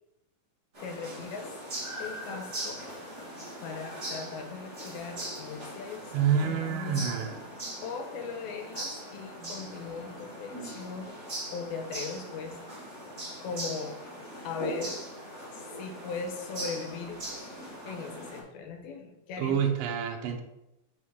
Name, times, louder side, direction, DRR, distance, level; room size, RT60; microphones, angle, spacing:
sound 1, 0.7-18.4, right 1 dB, 30° right, 1.3 m, -40 dB
voice 1, 0.8-1.5 2.0-2.8 3.6-7.1 7.8-11.2 11.5-12.6 13.4-14.0 14.4-15.0 15.8-17.2 17.9-19.8, left 5 dB, 80° left, 4 dB, 2.6 m, -39 dB
voice 2, 6.1-7.4 19.4-20.4, right 7 dB, 75° right, 3 dB, 2.4 m, -28 dB
5.6 x 5.6 x 3.3 m, 0.87 s
omnidirectional pair, 4.4 m